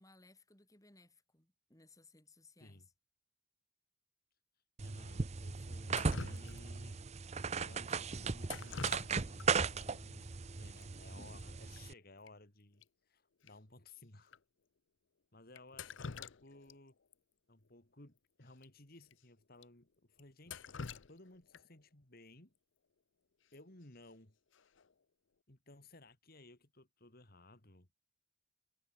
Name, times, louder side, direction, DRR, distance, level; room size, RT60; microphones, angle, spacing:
voice 1, 0.0-2.9, left 2 dB, 15° left, 4.0 m, -63 dB
voice 2, 4.8-7.1 7.6-10.3 10.6-14.4 15.3-16.9 17.5-20.6 21.1-22.5 23.5-24.4 25.5-27.9, left 2 dB, 50° left, 2.8 m, -59 dB
sound 1, 4.8-11.9, right 5 dB, 35° right, 0.6 m, -37 dB
Drip, 5.9-6.9 8.4-9.5 9.8-9.9 10.8-10.9 11.2-11.4 11.7-11.8 12.3-12.4 12.8-12.9 13.5-13.6 14.3-14.4 15.5-16.8 17.1-17.2 18.5-18.6 19.1-19.2 19.6-19.7 20.2-21.8 23.8-24.1 24.5-24.9, left 5 dB, 65° left, 0.7 m, -47 dB
head